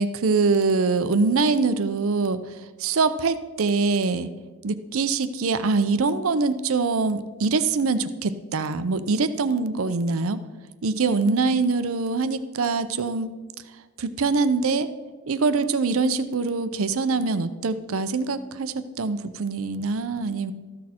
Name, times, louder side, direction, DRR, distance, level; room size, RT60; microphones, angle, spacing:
voice 1, 0.0-2.5 2.8-4.3 4.6-10.4 10.8-13.4 14.0-14.9 15.3-20.5, right 4 dB, 70° right, 12 dB, 0.6 m, -24 dB
13.5 x 6.4 x 4.3 m, 1.3 s
head